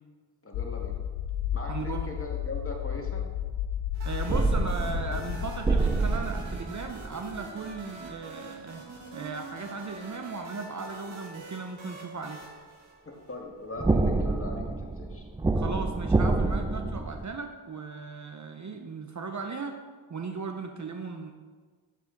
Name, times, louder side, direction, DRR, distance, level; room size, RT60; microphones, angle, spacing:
voice 1, 0.4-1.0 1.5-3.3 13.1-15.3, left 2 dB, 25° left, 1 dB, 1.8 m, -40 dB
sound 1, 0.5-5.6, left 10 dB, 75° left, 0.6 m, -33 dB
voice 2, 1.7-2.1 4.1-8.8 9.1-12.4 15.5-19.8 20.1-21.3, right 4 dB, 35° right, 5 dB, 0.8 m, -37 dB
sound 2, 3.9-13.6, right 3 dB, 65° right, 1.9 m, -45 dB
sound 3, 4.3-7.4 7.7-7.8 13.8-17.2, right 3 dB, 10° right, 0.4 m, -27 dB
7.6 x 7.6 x 3.9 m, 1.5 s
cardioid pair, 55°, 50 cm